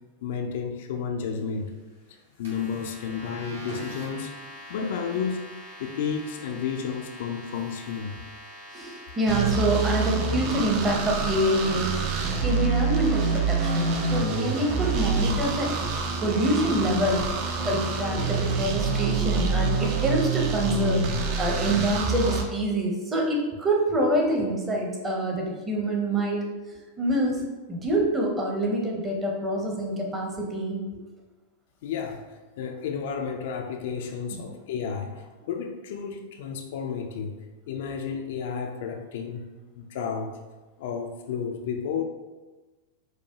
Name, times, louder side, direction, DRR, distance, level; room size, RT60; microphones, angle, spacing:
voice 1, 0.2-1.7 2.4-4.3 4.7-5.4 5.8-8.2 31.8-37.4 37.7-39.5 39.7-40.4 40.8-42.0, left 6 dB, 55° left, 4 dB, 0.3 m, -32 dB
sound 1, 2.4-15.2, equal, 70° right, 1.4 m, -45 dB
voice 2, 8.7-15.9 16.2-17.3 17.6-21.1 21.4-27.4 27.7-30.8 34.3-34.4, right 1 dB, 20° right, -1 dB, 0.8 m, -26 dB
sound 2, 9.3-22.4, right 4 dB, 45° right, 0.4 m, -27 dB
4.6 x 2.1 x 2.7 m, 1.2 s
figure-of-eight pair, 90°, 0 cm